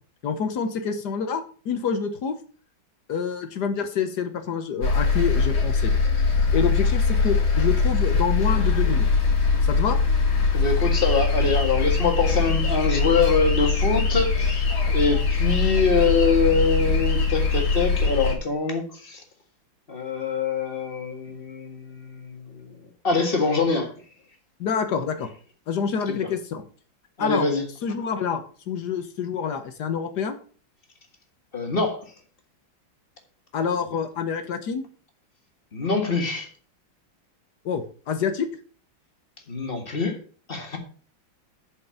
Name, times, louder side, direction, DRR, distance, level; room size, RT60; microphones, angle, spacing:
voice 1, 0.2-2.4 3.1-5.9 6.5-9.1 9.6-10.0 24.6-25.3 25.7-26.6 27.2-27.5 27.8-30.4 33.5-34.9 37.6-38.5, left 6 dB, 60° left, 8 dB, 1.5 m, -27 dB
sound 1, 4.8-18.4, left 4 dB, 90° left, 3.0 m, -22 dB
voice 2, 10.5-14.7 14.9-19.2 19.9-22.8 23.0-23.9 26.1-26.2 27.2-27.6 31.5-32.0 35.7-36.5 39.5-40.1 40.5-40.8, left 4 dB, 30° left, 4 dB, 1.8 m, -24 dB
8.2 x 5.4 x 6.9 m, 0.41 s
omnidirectional pair, 2.2 m